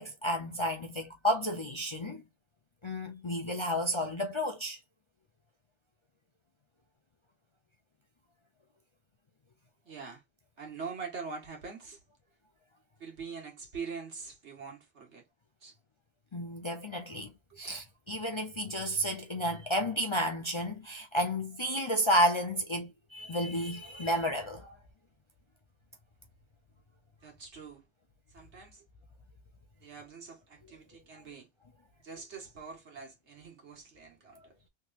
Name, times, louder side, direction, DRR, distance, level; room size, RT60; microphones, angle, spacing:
voice 1, 0.0-2.2 2.8-4.8 16.3-17.3 17.6-24.7, equal, 35° left, 0.5 m, -31 dB
voice 2, 9.9-10.2 10.6-12.0 13.0-15.3 15.6-15.8 17.5-17.6 27.2-27.9 28.3-28.8 29.8-31.5 32.0-34.6, right 5 dB, 75° right, 1.7 m, -44 dB
3.6 x 3.0 x 2.4 m
omnidirectional pair, 1.2 m